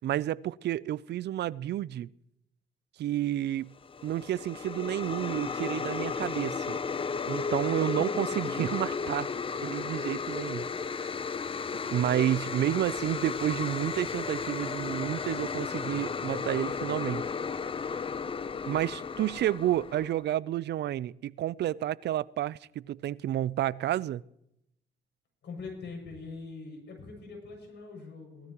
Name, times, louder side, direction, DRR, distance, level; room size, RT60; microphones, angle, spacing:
voice 1, 0.0-2.1 3.0-3.7 4.0-6.8 7.3-9.3 9.6-11.1 11.9-17.3 18.7-24.2, right 12 dB, 60° right, 22 dB, 0.4 m, -30 dB
sound 1, 3.8-20.2, left 5 dB, 25° left, 0.5 m, -34 dB
voice 2, 7.9-8.7 25.4-28.5, left 4 dB, 60° left, 1 dB, 6.7 m, -43 dB
18.5 x 13.5 x 3.0 m, 0.80 s
cardioid pair, 90°, 20 cm